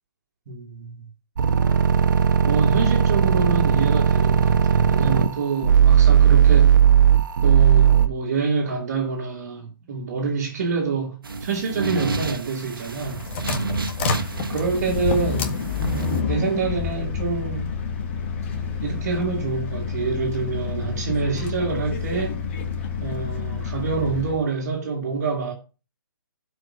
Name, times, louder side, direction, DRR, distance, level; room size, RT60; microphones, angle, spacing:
voice 1, 0.5-0.9 2.4-6.8 7.4-13.2 14.5-17.7 18.8-22.4 23.0-25.5, right 4 dB, 45° right, 2.3 m, -27 dB
sound 1, 1.4-8.1, right 8 dB, 60° right, 1.4 m, -16 dB
sound 2, 11.2-16.2, right 3 dB, 80° right, 1.7 m, -30 dB
sound 3, 12.9-24.4, left 5 dB, 35° left, 1.6 m, -28 dB
11.5 x 5.2 x 6.1 m
hypercardioid pair, 155°, 12 cm